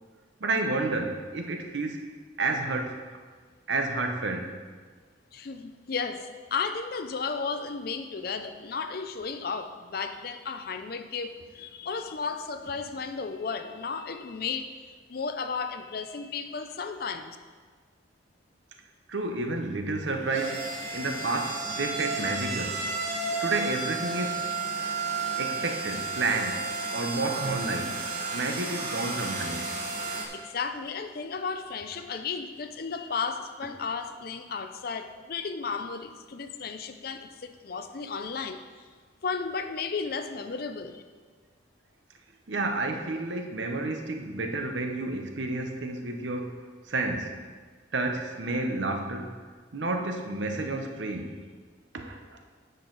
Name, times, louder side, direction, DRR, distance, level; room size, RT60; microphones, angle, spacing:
voice 1, 0.4-2.1 2.4-3.0 3.7-4.6 19.1-22.8 23.4-24.6 25.4-28.0 28.3-29.8 42.5-46.6 46.9-47.4 47.9-49.4 49.7-51.4 51.9-52.4, right 2 dB, 70° right, 4 dB, 0.9 m, -30 dB
voice 2, 5.3-17.4 30.3-38.6 39.2-41.0, left 5 dB, 50° left, 9 dB, 0.5 m, -34 dB
sound 1, 19.9-30.2, right 3 dB, 40° right, 1.4 m, -32 dB
9.3 x 6.4 x 4.0 m, 1.5 s
head